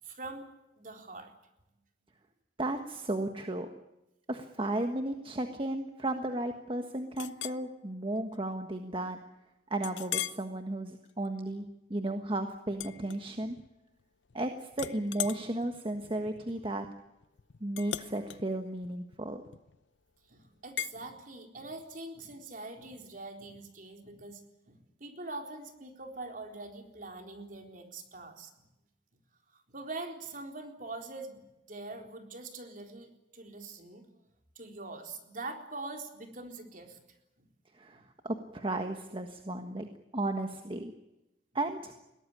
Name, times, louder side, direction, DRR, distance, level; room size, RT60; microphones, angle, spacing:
voice 1, 0.0-0.5 0.8-1.3 20.3-28.7 29.5-34.0 34.6-37.0 37.4-37.5 37.9-38.0, right 2 dB, 45° right, 4 dB, 4.0 m, -44 dB
voice 2, 2.6-3.7 4.3-9.2 9.7-13.6 14.3-16.9 17.6-19.4 37.7-39.9 40.1-40.9 41.5-41.9, right 1 dB, 30° right, 6 dB, 1.5 m, -34 dB
Chink clink, 7.2-7.6 8.2-8.3 8.8-8.9 9.8-10.5 11.0-11.3 12.7-13.7 14.0-14.4 14.7-19.8 20.8-21.0, left 12 dB, 80° left, 0.8 m, -40 dB
22.0 x 18.0 x 9.9 m, 0.94 s
head